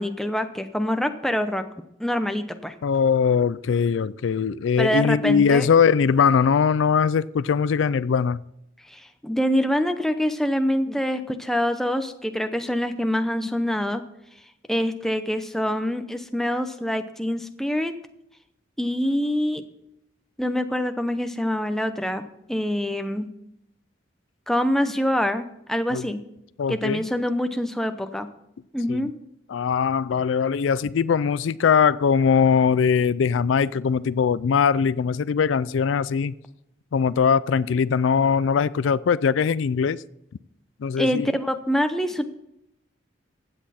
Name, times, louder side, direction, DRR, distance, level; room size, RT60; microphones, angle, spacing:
voice 1, 0.0-1.6 2.0-2.7 4.8-5.7 8.9-14.0 14.7-17.9 18.8-19.6 20.4-22.2 22.5-23.3 24.5-26.2 26.7-28.3 28.7-29.1 41.0-42.3, equal, ahead, 7 dB, 0.6 m, -25 dB
voice 2, 2.8-8.4 25.9-26.1 26.6-27.0 28.9-29.1 29.5-36.4 36.9-40.0 40.8-41.3, left 6 dB, 85° left, 18 dB, 0.4 m, -21 dB
15.5 x 8.5 x 4.2 m, 0.81 s
head